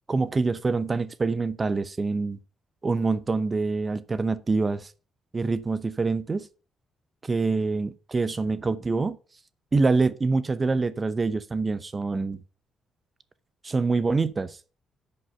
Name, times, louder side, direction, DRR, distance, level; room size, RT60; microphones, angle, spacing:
voice 1, 0.1-2.4 2.8-4.9 5.3-6.5 7.2-9.2 9.7-12.4 13.6-14.6, right 3 dB, 30° right, 0.7 m, -25 dB
9.8 x 5.4 x 5.5 m
cardioid pair, 90°, 0 cm